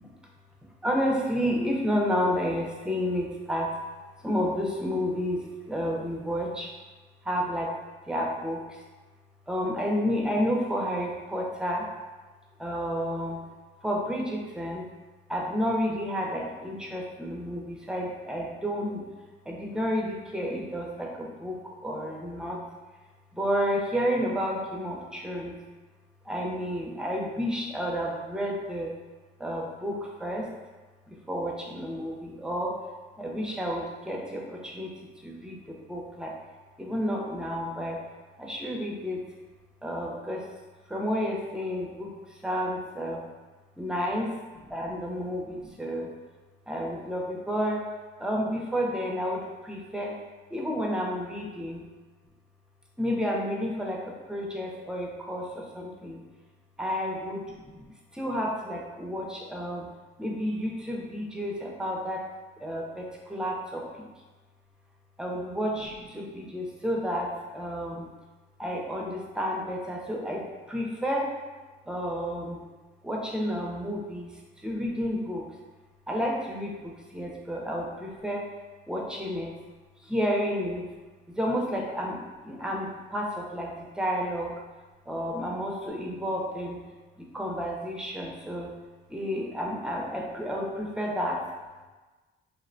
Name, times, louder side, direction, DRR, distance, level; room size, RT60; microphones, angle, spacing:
voice 1, 0.8-3.7 4.2-6.7 7.2-7.7 8.1-8.6 9.5-11.8 12.6-13.4 13.8-14.9 15.3-19.0 19.5-22.6 23.4-25.6 26.3-28.9 29.4-30.4 31.1-32.8 33.2-34.9 35.2-36.3 36.8-38.0 38.4-39.2 39.8-40.4 40.9-42.1 42.4-43.2 43.8-44.3 44.7-46.1 46.7-47.8 48.2-50.2 50.5-51.8 53.0-56.2 56.8-59.9 60.2-62.2 62.6-63.9 65.2-68.1 68.6-71.3 71.9-72.6 73.0-74.3 74.6-75.5 76.1-78.5 78.9-79.5 80.0-80.8 81.4-84.5 85.1-86.8 87.2-88.7 89.1-91.4, equal, 5° right, -2 dB, 0.5 m, -31 dB
2.7 x 2.1 x 2.5 m, 1.2 s
cardioid pair, 90°, 20 cm